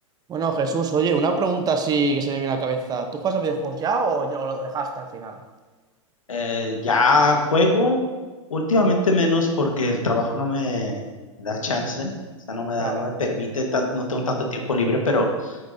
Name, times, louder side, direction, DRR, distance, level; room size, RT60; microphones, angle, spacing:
voice 1, 0.3-5.4 12.8-13.1, right 4 dB, 25° right, 6 dB, 0.9 m, -24 dB
voice 2, 6.3-8.0 8.5-11.0 11.4-12.1 12.5-15.6, left 2 dB, 85° left, 2 dB, 1.5 m, -22 dB
9.4 x 8.6 x 2.7 m, 1.3 s
hypercardioid pair, 105°, 17 cm